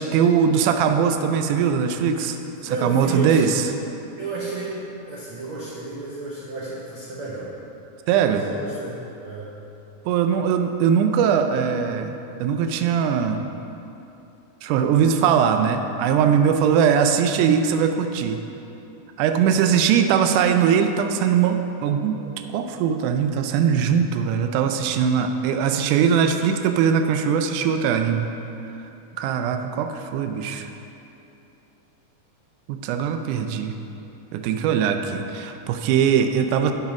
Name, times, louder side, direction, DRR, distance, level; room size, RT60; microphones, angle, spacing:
voice 1, 0.0-2.4 2.6-3.6 8.1-8.4 10.1-13.5 14.6-18.4 19.2-28.3 29.2-30.7 32.7-33.7 34.3-36.7, right 7 dB, 85° right, 6 dB, 2.1 m, -21 dB
voice 2, 2.6-3.4 4.2-7.5 8.2-9.5 22.2-22.7, right 2 dB, 65° right, -5 dB, 1.3 m, -33 dB
8.9 x 5.6 x 5.8 m, 2.9 s
omnidirectional pair, 3.6 m